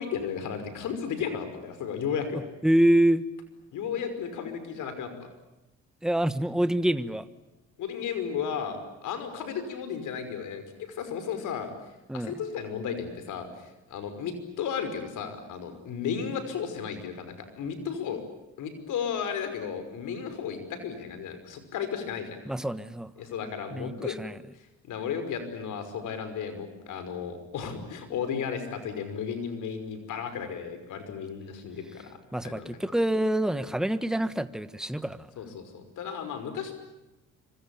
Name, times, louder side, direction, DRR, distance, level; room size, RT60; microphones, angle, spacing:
voice 1, 0.0-2.4 3.7-5.3 7.8-11.7 12.1-18.2 18.6-22.4 23.2-24.1 24.6-32.2 32.4-32.7 35.4-36.7, left 7 dB, 80° left, 9 dB, 5.6 m, -34 dB
voice 2, 2.3-3.3 6.0-7.3 12.1-12.3 22.4-23.1 23.7-24.4 32.3-35.3, right 1 dB, ahead, 12 dB, 1.4 m, -26 dB
26.0 x 25.0 x 8.7 m, 0.99 s
cardioid pair, 90°, 30 cm